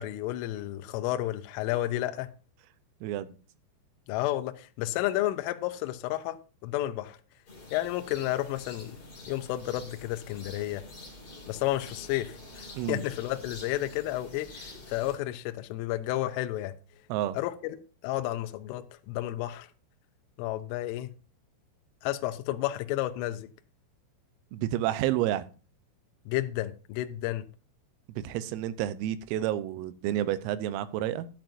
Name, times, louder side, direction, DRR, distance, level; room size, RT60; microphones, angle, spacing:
voice 1, 0.0-2.3 4.1-7.2 7.7-9.0 9.3-10.9 11.5-16.8 17.3-19.7 20.4-21.1 22.0-23.5 26.3-27.5, left 15 dB, 85° left, 3.1 m, -31 dB
voice 2, 3.0-3.4 12.8-13.0 17.1-17.4 24.5-25.5 28.2-31.3, right 12 dB, 90° right, 3.3 m, -30 dB
sound 1, 7.5-15.2, left 2 dB, 25° left, 3.0 m, -47 dB
13.5 x 9.0 x 2.6 m
omnidirectional pair, 5.9 m